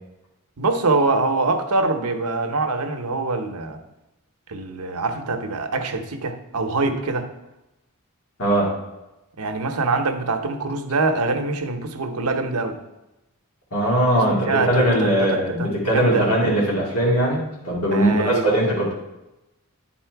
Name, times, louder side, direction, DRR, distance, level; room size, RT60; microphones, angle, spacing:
voice 1, 0.6-3.8 4.5-7.3 9.4-12.8 14.2-15.3 15.6-16.3 17.9-18.5, right 3 dB, 85° right, 6 dB, 0.8 m, -24 dB
voice 2, 8.4-8.7 13.7-18.9, right 1 dB, 75° left, -5 dB, 2.2 m, -20 dB
9.7 x 4.3 x 4.5 m, 0.97 s
head